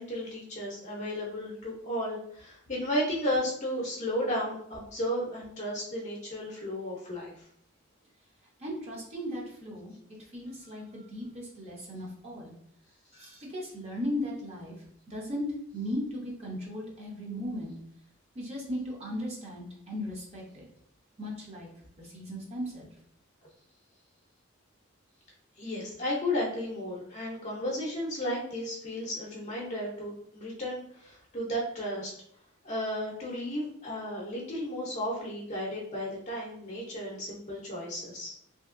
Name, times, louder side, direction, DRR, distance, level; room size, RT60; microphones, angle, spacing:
voice 1, 0.0-7.4 25.6-32.1 32.6-38.3, equal, 35° left, -4 dB, 0.6 m, -34 dB
voice 2, 8.6-9.9 10.3-12.5 13.1-14.8 15.1-15.5 15.7-17.7 18.3-20.7 21.2-21.7 22.0-22.9, equal, 30° right, -3 dB, 0.7 m, -37 dB
2.8 x 2.7 x 2.5 m, 0.67 s
head